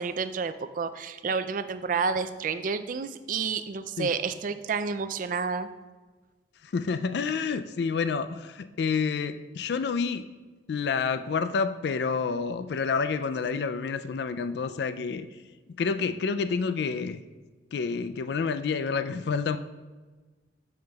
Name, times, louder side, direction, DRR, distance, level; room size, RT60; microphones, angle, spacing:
voice 1, 0.0-5.7, right 5 dB, 45° right, 11 dB, 0.4 m, -30 dB
voice 2, 6.6-10.3 10.7-15.3 15.8-17.2 17.7-19.6, left 5 dB, 60° left, 11 dB, 0.3 m, -28 dB
12.5 x 5.7 x 2.3 m, 1.3 s
head